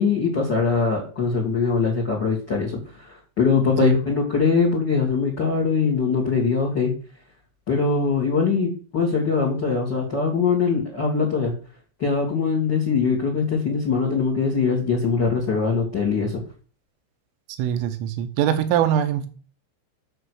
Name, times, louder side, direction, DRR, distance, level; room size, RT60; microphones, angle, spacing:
voice 1, 0.0-6.9 7.7-11.5 12.0-16.3, left 5 dB, 40° left, 1.6 m, -22 dB
voice 2, 17.5-19.3, right 10 dB, 80° right, 3.5 m, -22 dB
9.1 x 6.7 x 6.4 m
omnidirectional pair, 5.9 m